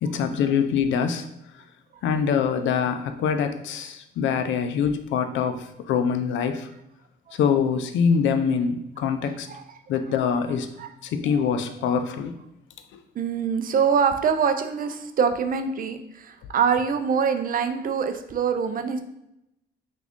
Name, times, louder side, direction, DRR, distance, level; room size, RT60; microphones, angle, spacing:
voice 1, 0.0-1.3 2.0-6.7 7.3-9.5 9.9-10.7 11.0-12.4 12.9-13.0, left 6 dB, 70° left, 9 dB, 0.4 m, -24 dB
voice 2, 9.2-10.2 10.8-10.9 11.3-11.4 13.2-19.0, right 6 dB, 45° right, 8 dB, 0.4 m, -25 dB
3.5 x 2.4 x 3.5 m, 0.85 s
cardioid pair, 90°, 20 cm